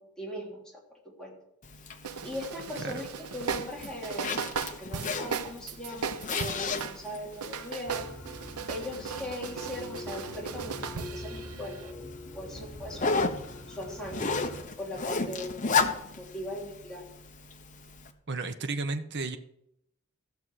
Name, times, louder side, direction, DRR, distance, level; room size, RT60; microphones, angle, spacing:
voice 1, 0.2-0.8 1.2-1.4 2.2-3.1 3.3-4.4 4.8-8.1 8.7-12.0 12.3-13.3 13.7-14.3 14.8-15.9 16.2-17.0, left 1 dB, 5° left, -4 dB, 3.2 m, -39 dB
Zipper (clothing), 1.6-18.1, left 4 dB, 35° left, 1.0 m, -35 dB
sound 1, 2.0-7.0 7.3-11.9, right 6 dB, 85° right, 0.8 m, -37 dB
sound 2, 7.8-14.6, left 1 dB, 60° left, 6.4 m, -44 dB
voice 2, 18.3-19.4, right 3 dB, 50° right, 7 dB, 1.0 m, -33 dB
15.0 x 7.1 x 6.3 m, 0.79 s
head